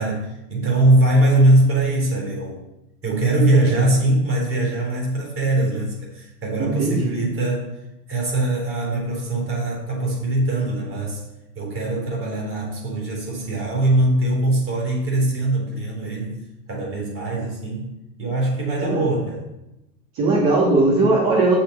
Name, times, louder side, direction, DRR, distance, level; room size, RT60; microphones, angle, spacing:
voice 1, 0.0-2.6 3.0-7.7 8.1-11.2 11.6-16.4 16.7-17.9 18.2-19.4, right 1 dB, 25° right, -2 dB, 3.8 m, -21 dB
voice 2, 6.6-7.2 18.8-19.0 20.1-21.6, right 2 dB, 45° right, -4 dB, 3.3 m, -19 dB
6.5 x 6.0 x 7.3 m, 0.91 s
hypercardioid pair, 95°, 49 cm